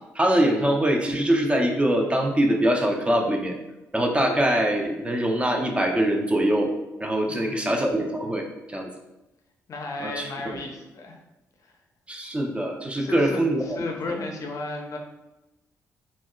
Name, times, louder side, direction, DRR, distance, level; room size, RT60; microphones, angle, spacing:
voice 1, 0.1-3.5 3.9-6.7 7.0-8.9 10.0-10.2 10.5-10.6 12.1-13.8, right 1 dB, 15° right, 1 dB, 0.4 m, -23 dB
voice 2, 7.3-7.7 9.7-11.2 11.6-11.8 13.0-15.0, left 2 dB, 45° left, 2 dB, 0.5 m, -34 dB
2.8 x 2.1 x 2.3 m, 0.99 s
figure-of-eight pair, 40°, 8 cm